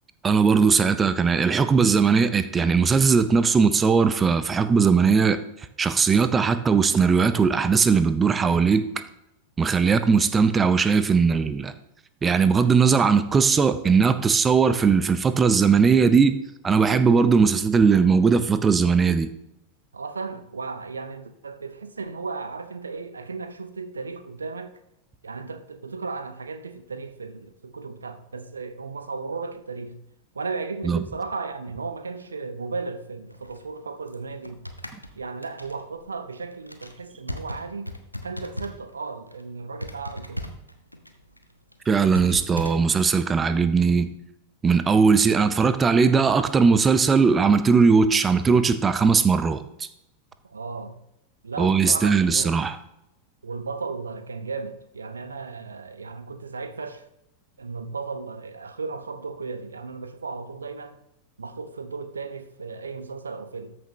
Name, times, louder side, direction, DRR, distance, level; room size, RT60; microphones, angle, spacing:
voice 1, 0.2-5.4 5.8-8.9 9.6-11.7 12.2-16.3 16.6-19.3 30.9-31.0 41.9-44.1 44.6-49.6 51.6-52.7, right 5 dB, 20° right, 0.6 m, -19 dB
voice 2, 19.9-24.8 25.2-30.0 30.3-34.6 35.2-37.9 38.2-40.5 50.4-51.0 51.4-52.6 53.4-57.1 57.6-61.0 61.4-63.7, right 4 dB, 75° right, 0.7 m, -35 dB
sound 1, 33.3-38.9 39.2-39.4 39.8-42.7, equal, 90° left, 0.8 m, -37 dB
13.5 x 6.2 x 3.0 m
figure-of-eight pair, 90°, 0 cm